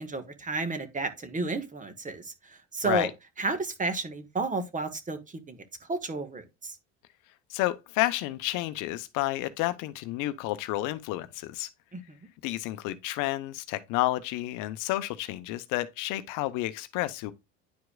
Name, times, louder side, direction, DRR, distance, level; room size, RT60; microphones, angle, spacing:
voice 1, 0.0-3.1 3.4-6.8 11.9-12.0, right 3 dB, 25° right, 1.3 m, -32 dB
voice 2, 7.5-11.7 12.4-17.3, left 17 dB, 70° left, 0.7 m, -30 dB
10.5 x 4.7 x 2.2 m
supercardioid pair, 85°, 32 cm